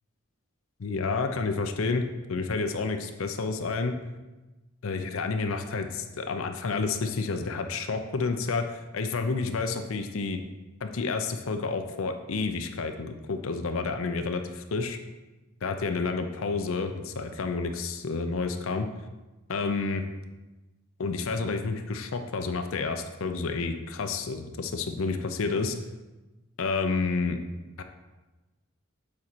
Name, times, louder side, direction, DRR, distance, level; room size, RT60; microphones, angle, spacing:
voice 1, 0.8-4.0 4.8-10.4 10.8-15.0 15.6-18.9 19.5-20.0 21.0-25.8 26.6-27.4 27.8-27.9, left 4 dB, 80° left, 7 dB, 0.5 m, -30 dB
7.4 x 4.2 x 4.5 m, 1.1 s
head